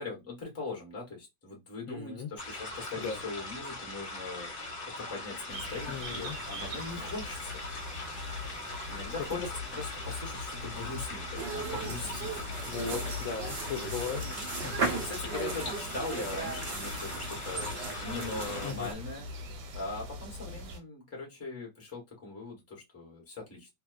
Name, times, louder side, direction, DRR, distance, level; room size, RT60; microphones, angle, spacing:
voice 1, 0.0-7.6 8.9-9.4 9.7-12.5 14.7-17.7 18.0-19.3 19.7-23.7, left 3 dB, 15° left, 0.6 m, -41 dB
voice 2, 1.9-2.3 3.0-3.2 5.9-6.4 9.3-9.5 12.7-14.3 14.6-15.0 18.6-18.9, left 5 dB, 70° left, 0.9 m, -37 dB
sound 1, 2.4-18.7, left 2 dB, 35° left, 1.1 m, -41 dB
sound 2, 5.5-20.8, left 2 dB, 80° right, 1.2 m, -42 dB
sound 3, 11.3-18.9, right 4 dB, 65° right, 0.6 m, -37 dB
2.8 x 2.1 x 2.3 m
omnidirectional pair, 1.9 m